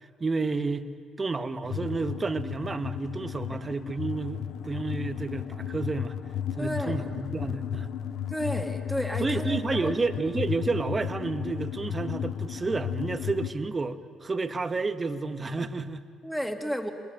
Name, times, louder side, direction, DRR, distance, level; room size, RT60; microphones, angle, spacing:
voice 1, 0.2-0.9 1.2-6.1 6.6-7.9 9.2-16.0, right 3 dB, 30° right, 9 dB, 1.4 m, -30 dB
sound 1, 1.6-13.5, left 9 dB, 65° left, 0.8 m, -34 dB
voice 2, 6.6-7.1 8.3-9.9 16.2-16.9, equal, ahead, 3 dB, 3.0 m, -32 dB
26.5 x 20.5 x 9.2 m, 2.1 s
supercardioid pair, 60°, 0 cm